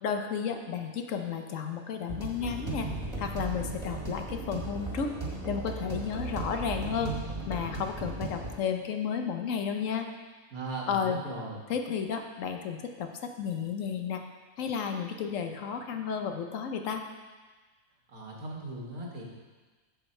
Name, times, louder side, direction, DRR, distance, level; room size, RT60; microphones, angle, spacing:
voice 1, 0.0-2.9 3.2-5.2 5.4-7.1 7.5-10.1 10.9-11.2 11.7-14.2 14.6-17.0, left 7 dB, 70° left, 5 dB, 1.0 m, -32 dB
sound 1, 2.1-8.5, right 2 dB, 20° right, 1.6 m, -36 dB
voice 2, 10.5-11.7 18.1-19.3, right 2 dB, 85° right, -2 dB, 2.0 m, -38 dB
7.5 x 7.0 x 4.4 m, 1.3 s
omnidirectional pair, 1.5 m